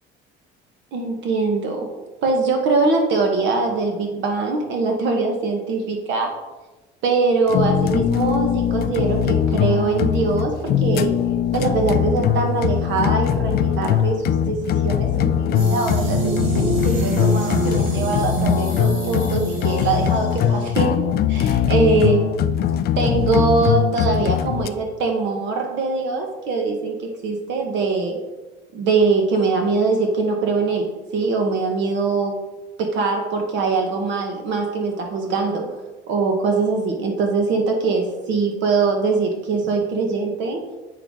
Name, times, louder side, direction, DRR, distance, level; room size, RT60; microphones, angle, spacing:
voice 1, 0.9-1.9 2.2-6.3 7.0-11.1 11.5-22.2 23.0-28.2 28.7-32.4 32.8-35.7 36.1-40.6, right 4 dB, 65° right, 2 dB, 1.2 m, -22 dB
sound 1, 7.5-24.7, left 9 dB, 50° left, 0.4 m, -21 dB
sound 2, 15.5-20.8, right 3 dB, 85° right, 1.8 m, -26 dB
7.7 x 5.8 x 3.6 m, 1.1 s
cardioid pair, 115°, 20 cm